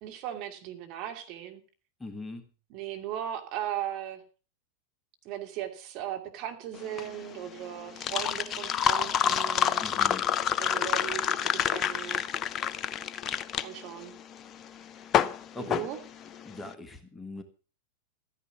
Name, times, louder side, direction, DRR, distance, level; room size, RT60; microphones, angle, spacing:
voice 1, 0.0-1.6 2.7-4.2 5.2-9.9 10.6-12.2 13.6-14.1 15.6-16.0, right 11 dB, 40° right, 5 dB, 2.7 m, -37 dB
voice 2, 2.0-2.4 9.8-10.2 15.0-15.1 15.5-15.8 16.4-17.4, left 2 dB, 10° left, 7 dB, 1.7 m, -40 dB
sound 1, 6.8-16.6, left 8 dB, 30° left, 0.7 m, -28 dB
14.0 x 10.0 x 6.1 m, 0.37 s
figure-of-eight pair, 90°, 0 cm